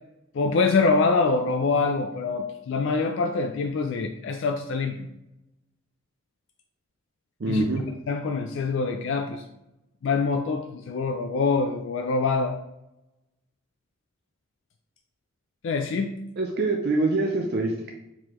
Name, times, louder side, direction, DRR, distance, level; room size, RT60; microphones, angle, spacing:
voice 1, 0.3-5.1 7.5-7.7 8.1-9.4 10.0-12.6 15.6-16.1, left 4 dB, 60° left, 5 dB, 0.3 m, -25 dB
voice 2, 7.4-7.8 16.4-17.9, right 2 dB, 50° right, 1 dB, 0.5 m, -25 dB
4.8 x 3.7 x 3.0 m, 0.89 s
head